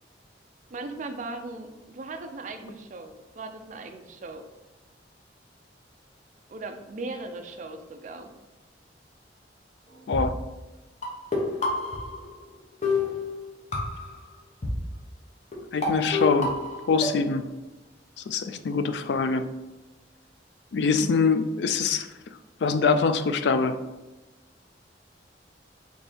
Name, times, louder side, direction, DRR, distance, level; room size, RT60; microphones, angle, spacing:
voice 1, 0.7-4.4 6.5-8.3, right 3 dB, 45° right, 5 dB, 0.4 m, -38 dB
sound 1, 10.1-10.2 11.0-12.5 12.8-14.2 14.6-14.7 15.5-15.6 15.8-17.4, left 4 dB, 40° left, 1.0 m, -29 dB
voice 2, 15.7-16.5 16.9-17.4 18.3-19.4 20.7-22.1 22.6-23.8, left 4 dB, 70° left, 10 dB, 0.4 m, -24 dB
4.2 x 3.4 x 3.4 m, 1.0 s
head